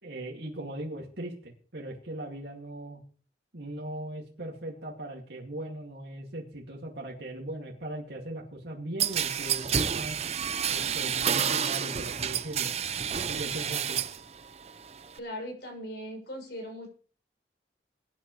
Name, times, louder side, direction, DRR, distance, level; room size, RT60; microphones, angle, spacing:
voice 1, 0.0-3.0 3.5-10.2 10.7-12.7 13.3-14.0, right 1 dB, 70° right, -2 dB, 2.3 m, -39 dB
sound 1, 9.0-14.2 14.6-15.2, right 8 dB, 35° right, 0.6 m, -29 dB
voice 2, 15.1-16.9, equal, 70° left, 1 dB, 6.4 m, -39 dB
22.0 x 9.9 x 3.2 m, 0.40 s
head